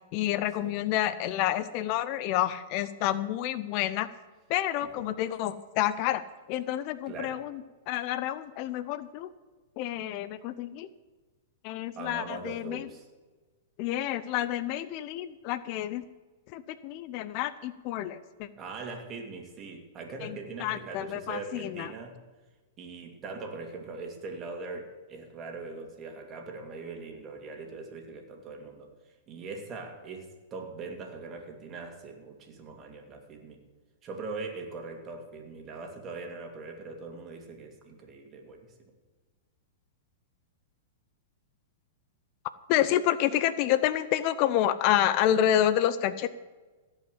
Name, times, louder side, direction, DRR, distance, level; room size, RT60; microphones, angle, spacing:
voice 1, 0.1-4.1 4.5-6.2 6.5-7.6 7.9-9.3 9.8-10.9 11.6-12.8 13.8-16.0 16.5-18.5 20.2-20.3 20.6-21.9 42.7-46.3, left 12 dB, 45° left, 15 dB, 0.6 m, -28 dB
voice 2, 7.1-7.4 11.9-13.1 18.6-22.2 22.8-28.9 29.3-33.6 34.0-38.7, right 3 dB, 30° right, 3 dB, 2.7 m, -41 dB
16.5 x 5.7 x 8.2 m, 1.3 s
hypercardioid pair, 120°, 0 cm